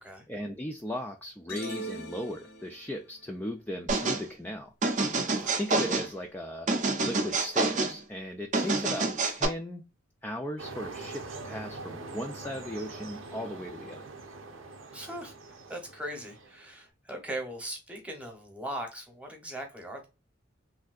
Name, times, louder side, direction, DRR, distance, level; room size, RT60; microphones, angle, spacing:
voice 1, 0.3-4.7 5.6-6.7 7.0-9.8 10.2-14.1, equal, 10° left, 0.3 m, -37 dB
sound 1, 1.5-3.0, equal, 55° left, 0.6 m, -40 dB
sound 2, 3.9-4.2 4.8-6.1 6.7-7.9 8.5-9.5, right 3 dB, 40° right, 0.6 m, -27 dB
voice 2, 5.3-5.6 8.6-8.8 14.9-15.3 15.7-20.0, right 1 dB, 5° right, 0.9 m, -39 dB
sound 3, 10.6-16.8, right 3 dB, 90° right, 0.8 m, -43 dB
3.3 x 2.6 x 2.4 m
head